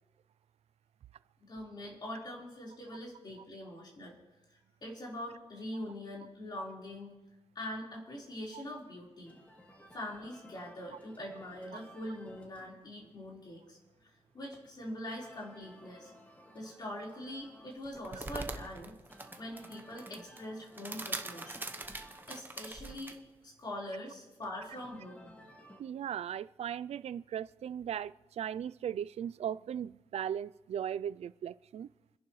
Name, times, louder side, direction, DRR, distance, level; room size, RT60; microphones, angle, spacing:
voice 1, 1.4-4.2 4.5-7.1 7.5-9.3 9.9-13.8 14.0-16.1 16.5-19.0 19.4-21.6 22.3-23.2 23.4-25.3, left 1 dB, 40° left, -3 dB, 4.3 m, -43 dB
sound 1, 9.2-25.8, equal, 15° left, 2.1 m, -58 dB
sound 2, 17.8-23.2, right 2 dB, 15° right, 1.0 m, -42 dB
voice 2, 25.8-31.9, right 9 dB, 70° right, 18 dB, 0.4 m, -38 dB
29.0 x 10.5 x 3.2 m, 1.0 s
wide cardioid pair, 120°, 11 cm